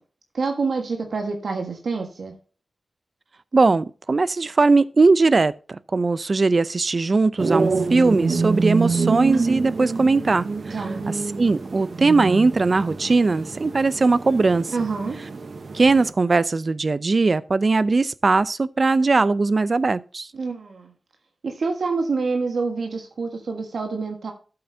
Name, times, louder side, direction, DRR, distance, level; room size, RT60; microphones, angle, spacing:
voice 1, 0.3-2.3 10.7-11.0 14.7-15.2 20.3-20.9 21.4-24.3, right 4 dB, 75° right, 1.5 m, -27 dB
voice 2, 3.5-10.7 11.4-14.7 15.7-20.3, right 3 dB, 45° right, 0.5 m, -19 dB
sound 1, 7.4-16.1, right 4 dB, 60° right, 1.0 m, -27 dB
13.0 x 7.7 x 2.8 m
wide cardioid pair, 100°, 0 cm